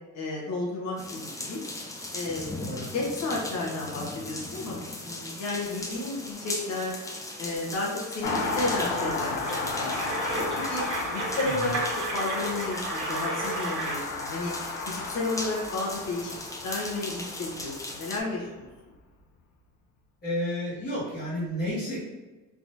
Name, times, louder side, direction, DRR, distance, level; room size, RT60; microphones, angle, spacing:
voice 1, 0.1-1.6 2.1-2.6 2.9-7.0 7.4-9.5 9.8-10.8 11.1-11.8 12.1-14.5 14.9-16.4 16.6-18.7, left 2 dB, 55° left, -4 dB, 1.1 m, -32 dB
sound 1, 1.0-18.2, left 2 dB, 10° left, 0.4 m, -39 dB
voice 2, 2.6-2.9 11.4-11.7 20.2-22.0, equal, 30° left, -10 dB, 1.3 m, -31 dB
Car passing by, 8.2-18.2 18.4-18.5, left 3 dB, 75° left, 0.7 m, -34 dB
sound 2, 9.2-14.1, right 2 dB, 60° right, 1.4 m, -33 dB
3.5 x 2.9 x 2.6 m, 1.2 s
cardioid pair, 130°, 32 cm